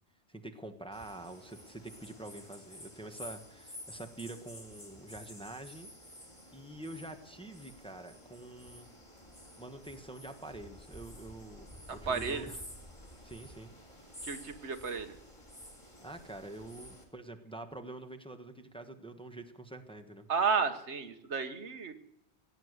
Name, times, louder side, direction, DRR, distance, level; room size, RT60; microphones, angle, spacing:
voice 1, 0.3-6.2 6.5-8.9 9.6-12.6 13.2-13.7 16.0-20.2, right 2 dB, 5° left, 5 dB, 1.2 m, -46 dB
sound 1, 0.9-17.0, equal, 25° left, 3.3 m, -51 dB
voice 2, 12.1-12.5 14.2-15.1 20.3-21.9, right 5 dB, 85° right, 9 dB, 1.6 m, -32 dB
16.5 x 9.4 x 8.0 m, 0.76 s
omnidirectional pair, 1.1 m